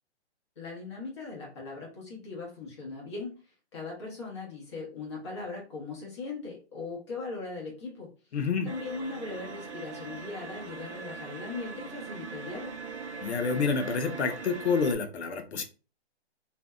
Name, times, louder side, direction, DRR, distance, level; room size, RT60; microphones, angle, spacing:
voice 1, 0.6-3.3 3.7-8.1 8.6-12.7, left 3 dB, 25° left, -2 dB, 0.8 m, -39 dB
voice 2, 8.3-8.7 13.2-15.6, left 5 dB, 80° left, 6 dB, 0.7 m, -28 dB
sound 1, 8.6-14.9, right 4 dB, 85° right, 0.7 m, -41 dB
2.6 x 2.2 x 2.2 m, 0.34 s
hypercardioid pair, 165°, 33 cm